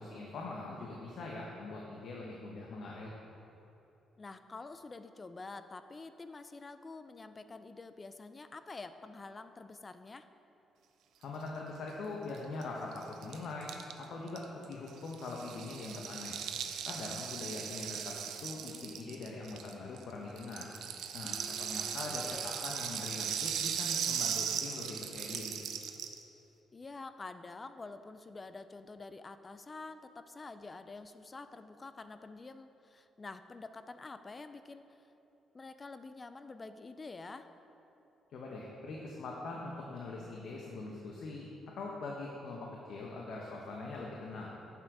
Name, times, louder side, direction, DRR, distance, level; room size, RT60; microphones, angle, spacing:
voice 1, 0.0-3.1 11.2-13.7 14.0-16.4 16.8-20.7 21.1-25.6 38.3-41.4 41.8-44.5, left 3 dB, 70° left, -2 dB, 1.0 m, -42 dB
voice 2, 4.2-10.3 21.2-22.0 22.3-22.5 26.7-35.0 35.5-37.5, left 3 dB, 30° left, 10 dB, 0.4 m, -48 dB
Rattle (instrument), 12.3-12.4 12.6-12.7 12.9-20.0 20.4-26.2, right 8 dB, 80° right, 0.5 m, -38 dB
7.7 x 7.5 x 4.8 m, 3.0 s
cardioid pair, 90°, 0 cm